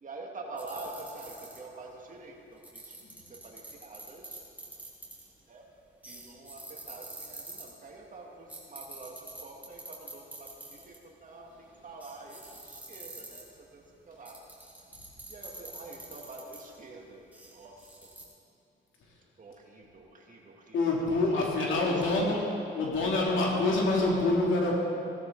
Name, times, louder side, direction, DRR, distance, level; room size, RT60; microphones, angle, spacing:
voice 1, 0.0-3.0 3.3-4.4 5.5-5.8 6.1-14.4 15.3-18.3 19.4-20.8 21.7-22.4, right 3 dB, 40° right, 0 dB, 2.3 m, -46 dB
sound 1, 0.6-1.8 2.6-5.4 6.0-7.7 8.5-11.0 11.4-11.5 12.0-13.6 14.3-16.8 17.3-18.2, right 2 dB, 10° right, 3.9 m, -45 dB
voice 2, 20.7-22.4 22.7-24.7, left 2 dB, 75° left, -3 dB, 3.1 m, -26 dB
16.5 x 14.0 x 4.0 m, 2.7 s
cardioid pair, 90°, 20 cm